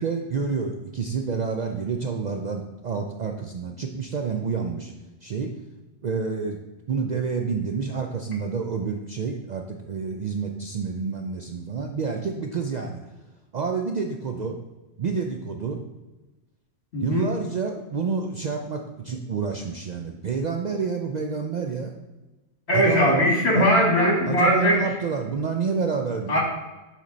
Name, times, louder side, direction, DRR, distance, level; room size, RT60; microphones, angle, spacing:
voice 1, 0.0-4.9 5.2-5.5 6.0-6.6 6.9-13.0 13.5-14.6 15.0-15.8 17.0-21.9 22.7-23.2 23.5-23.7 24.3-26.4, right 5 dB, 55° right, 3 dB, 0.5 m, -28 dB
voice 2, 16.9-17.2 22.7-24.8 26.3-26.4, equal, 65° left, -2 dB, 2.2 m, -20 dB
7.3 x 4.3 x 3.9 m, 1.1 s
omnidirectional pair, 1.2 m